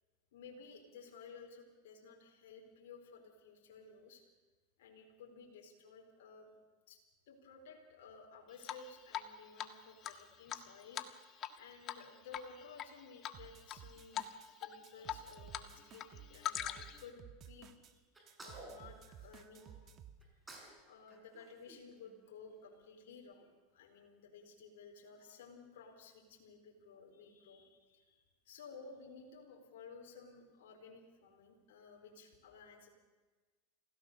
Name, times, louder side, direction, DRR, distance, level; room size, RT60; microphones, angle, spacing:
voice 1, 0.3-4.2 4.8-6.5 6.9-7.0 7.3-11.2 11.6-14.3 14.6-18.0 18.4-19.8 20.8-32.9, left 5 dB, 75° left, 1 dB, 4.3 m, -55 dB
Drip, 8.6-9.3 9.6-9.7 10.0-11.6 11.8-12.0 12.3-12.9 13.2-13.8 14.1-14.3 14.6-15.7 15.9-17.0, left 11 dB, 40° left, 1.5 m, -41 dB
sound 1, 13.3-14.5 14.8-17.9 18.3-20.2, right 8 dB, 40° right, 1.5 m, -55 dB
Sneeze, 18.1-19.7 20.2-20.8 21.1-22.5, right 2 dB, 15° right, 6.1 m, -55 dB
26.5 x 16.5 x 6.9 m, 1.3 s
hypercardioid pair, 110°, 0 cm